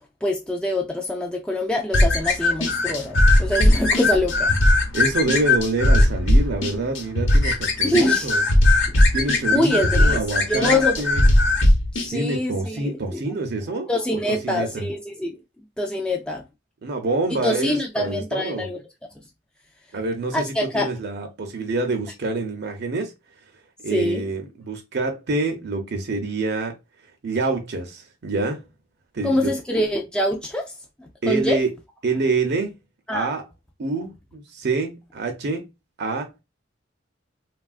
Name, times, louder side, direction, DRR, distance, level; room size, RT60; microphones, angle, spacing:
voice 1, 0.2-4.5 7.8-8.3 8.9-9.0 9.5-11.0 11.9-13.2 13.9-15.4 15.8-16.4 17.4-18.8 20.3-20.9 23.9-24.2 29.2-30.7 31.0-31.6 33.1-33.3, left 1 dB, 5° left, 0.3 m, -24 dB
sound 1, 1.9-12.1, left 1 dB, 75° left, 0.9 m, -18 dB
voice 2, 4.9-8.4 9.1-11.2 12.1-14.9 16.8-18.7 19.9-23.1 23.8-26.8 27.2-28.6 29.1-29.5 31.2-31.7 32.0-32.7 33.1-33.5 33.8-35.7 36.0-36.3, right 3 dB, 60° right, 0.5 m, -26 dB
3.2 x 2.3 x 2.4 m
head